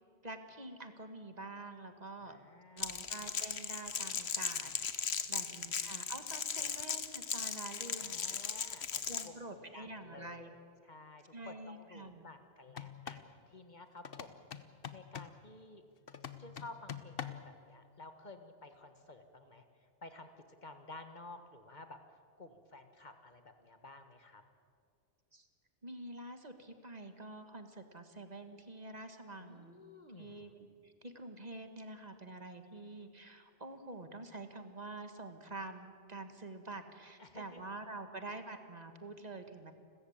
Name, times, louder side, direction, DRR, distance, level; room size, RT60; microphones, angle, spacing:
voice 1, 0.2-2.4 2.7-8.4 9.1-10.5 11.3-12.3 25.3-25.5 25.8-29.8 30.2-39.7, right 2 dB, 40° right, 7 dB, 1.6 m, -47 dB
voice 2, 2.2-2.9 5.2-5.7 6.6-6.7 8.0-10.6 10.8-15.8 16.4-24.4 29.4-30.5 37.2-37.6, left 2 dB, 45° left, 7 dB, 1.6 m, -53 dB
Crackle, 2.8-9.3, left 7 dB, 80° left, 1.3 m, -38 dB
sound 1, 12.7-13.3 14.0-15.4 16.1-17.5, left 8 dB, 65° left, 1.2 m, -45 dB
29.5 x 14.5 x 8.7 m, 2.3 s
omnidirectional pair, 1.1 m